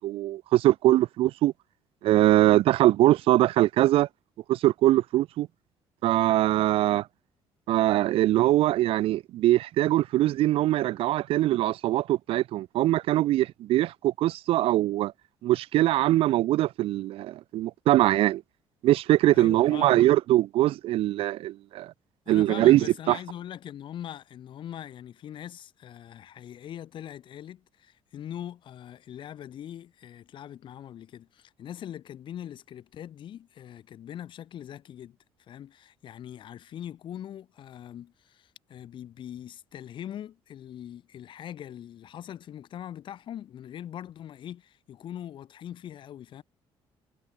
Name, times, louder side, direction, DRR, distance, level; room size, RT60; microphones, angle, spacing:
voice 1, 0.0-1.5 2.0-4.1 4.5-5.5 6.0-7.1 7.7-15.1 15.4-18.4 18.8-21.9 22.3-23.2, right 15 dB, 75° right, 0.8 m, -22 dB
voice 2, 19.3-20.0 22.3-35.2 35.5-46.4, left 10 dB, 55° left, 2.8 m, -42 dB
cardioid pair, 130°, 10 cm